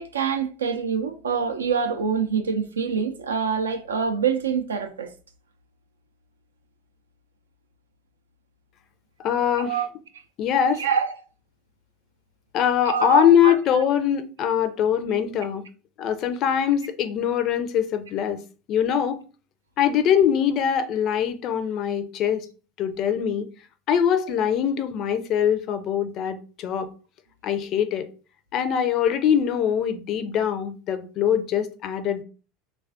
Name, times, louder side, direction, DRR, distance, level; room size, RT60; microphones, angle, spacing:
voice 1, 0.0-5.1 9.5-9.9 10.8-11.1 12.8-13.5, right 6 dB, 75° right, 0.4 m, -25 dB
voice 2, 9.2-9.8 10.4-10.8 12.5-15.6 16.0-18.4 18.7-19.2 19.8-22.5 22.8-23.5 23.9-26.9 27.4-28.1 28.5-32.2, left 9 dB, 45° left, 0.4 m, -22 dB
3.2 x 2.3 x 2.6 m
figure-of-eight pair, 75°, 0 cm